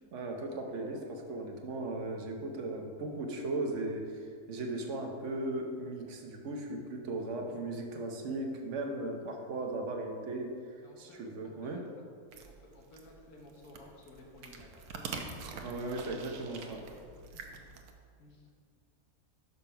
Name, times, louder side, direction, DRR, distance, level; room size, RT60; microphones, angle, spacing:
voice 1, 0.1-11.8 15.5-16.9, right 2 dB, 60° right, 3 dB, 1.2 m, -37 dB
voice 2, 10.8-12.1 12.4-15.7 16.9-17.8 18.2-18.5, left 2 dB, 80° left, 0 dB, 1.6 m, -56 dB
sound 1, 12.3-17.9, right 4 dB, 80° right, 1.2 m, -46 dB
5.9 x 5.4 x 5.7 m, 2.3 s
omnidirectional pair, 1.5 m